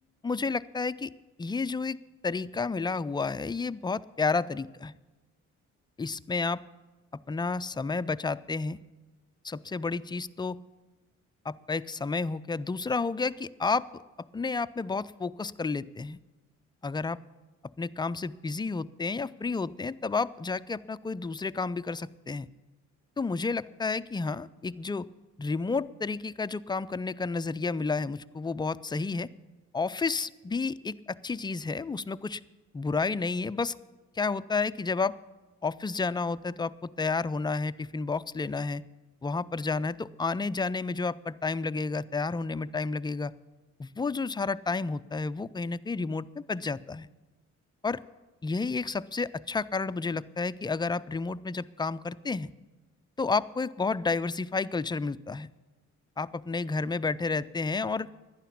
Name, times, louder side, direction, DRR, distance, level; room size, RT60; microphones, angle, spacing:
voice 1, 0.2-1.1 1.4-2.0 2.2-4.9 6.0-6.6 7.3-8.8 9.4-10.6 11.5-13.8 14.3-16.2 16.8-17.2 17.8-22.5 23.2-25.1 25.4-29.3 29.7-32.4 32.7-33.8 34.2-35.1 35.6-38.8 39.2-43.3 43.8-47.1 47.8-48.0 48.4-52.5 53.2-55.5 56.2-58.1, left 4 dB, 15° left, 14 dB, 0.3 m, -31 dB
11.5 x 10.0 x 8.5 m, 1.2 s
cardioid pair, 90°, 30 cm